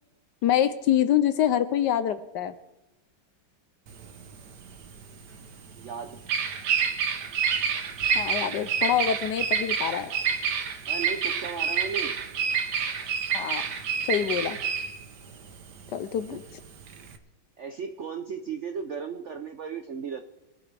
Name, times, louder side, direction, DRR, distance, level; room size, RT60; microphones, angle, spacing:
voice 1, 0.4-2.5 8.1-10.1 13.3-13.6 14.1-14.6 15.9-16.4, left 10 dB, 70° left, 12 dB, 1.1 m, -25 dB
Bird vocalization bird call bird song, 3.9-17.2, right 6 dB, 60° right, 1.5 m, -28 dB
voice 2, 5.8-6.2 10.9-12.2 16.3-16.4 17.6-20.2, right 6 dB, 80° right, 7 dB, 0.6 m, -35 dB
23.0 x 11.5 x 3.4 m, 1.0 s
omnidirectional pair, 2.2 m